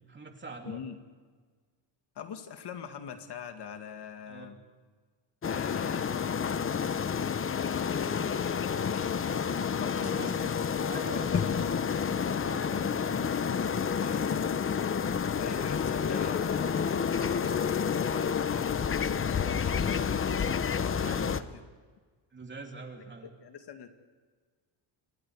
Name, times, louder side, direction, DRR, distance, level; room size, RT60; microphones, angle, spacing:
voice 1, 0.1-0.8 4.3-4.5 10.0-10.6 10.9-11.7 12.0-13.1 21.0-21.4 22.3-23.3, right 3 dB, 25° right, 3 dB, 3.1 m, -44 dB
voice 2, 0.6-1.0 2.2-4.6 5.4-6.5 7.4-9.2 9.7-10.5 11.1-11.4 12.4-13.2 13.7-14.4 15.2-20.4 20.8-21.6 23.4-23.9, left 8 dB, 60° left, 6 dB, 2.3 m, -43 dB
sound 1, 5.4-21.4, left 7 dB, 30° left, 0.8 m, -29 dB
Wind instrument woodwind instrument, 9.6-14.2, right 6 dB, 80° right, 3.2 m, -53 dB
28.0 x 23.0 x 5.0 m, 1.5 s
cardioid pair, 135°, 46 cm